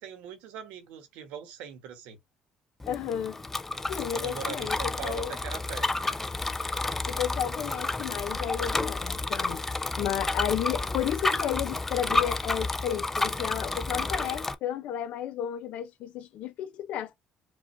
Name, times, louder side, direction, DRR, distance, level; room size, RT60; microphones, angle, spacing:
voice 1, 0.0-2.2 4.1-6.1, right 9 dB, 90° right, 1.3 m, -41 dB
Bicycle, 2.8-14.5, left 2 dB, 15° left, 0.4 m, -31 dB
voice 2, 2.9-3.4 3.9-5.3 7.1-9.6 10.0-17.2, left 10 dB, 70° left, 0.8 m, -32 dB
4.9 x 2.5 x 2.6 m
cardioid pair, 110°, 2 cm